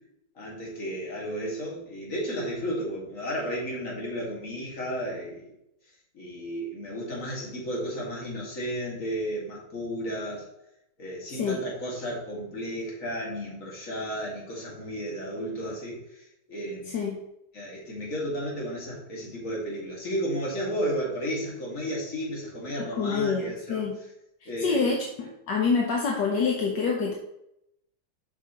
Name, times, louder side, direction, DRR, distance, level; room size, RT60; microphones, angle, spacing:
voice 1, 0.4-5.5 6.1-10.5 11.0-16.2 16.5-17.0 17.5-23.9 24.5-25.0, equal, 45° left, -3 dB, 2.4 m, -33 dB
voice 2, 23.0-24.0 24.6-27.1, left 5 dB, 70° left, 0 dB, 1.5 m, -26 dB
7.4 x 6.0 x 3.0 m, 0.81 s
omnidirectional pair, 2.0 m